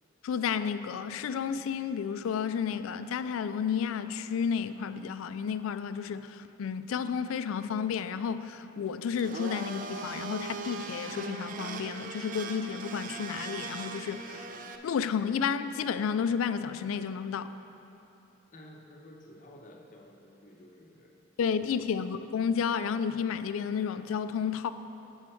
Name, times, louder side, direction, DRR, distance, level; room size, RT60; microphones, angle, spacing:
voice 1, 0.2-14.5 14.8-17.5 21.4-24.7, left 7 dB, 75° left, 0.3 m, -31 dB
Domestic sounds home sounds, 9.2-14.8, right 4 dB, 40° right, 0.3 m, -39 dB
voice 2, 18.5-21.7, left 1 dB, 35° left, 0.7 m, -53 dB
7.6 x 7.2 x 4.4 m
head